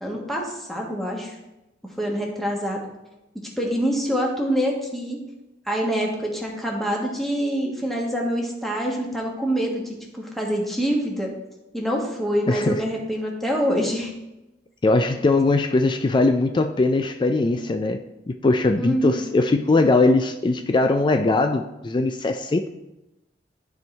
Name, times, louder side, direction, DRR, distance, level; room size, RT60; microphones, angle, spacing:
voice 1, 0.0-1.3 2.0-2.8 3.6-5.2 5.7-9.8 10.1-11.3 11.7-14.1 18.8-19.4, equal, ahead, -2 dB, 1.4 m, -25 dB
voice 2, 12.5-12.8 14.8-22.7, left 3 dB, 25° left, 7 dB, 0.3 m, -20 dB
12.0 x 4.5 x 3.3 m, 0.94 s
head